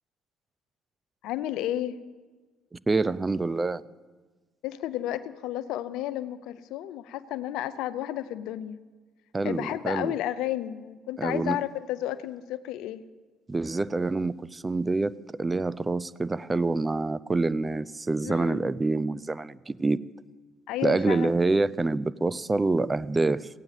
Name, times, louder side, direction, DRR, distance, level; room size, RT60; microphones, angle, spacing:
voice 1, 1.2-1.9 4.6-8.8 9.4-13.0 18.2-18.7 20.7-21.3, left 13 dB, 80° left, 0.6 m, -32 dB
voice 2, 2.9-3.8 9.3-10.1 11.2-11.6 13.5-20.0 20.8-23.5, right 3 dB, 20° right, 0.5 m, -26 dB
16.0 x 9.1 x 7.3 m
supercardioid pair, 80°, 0 cm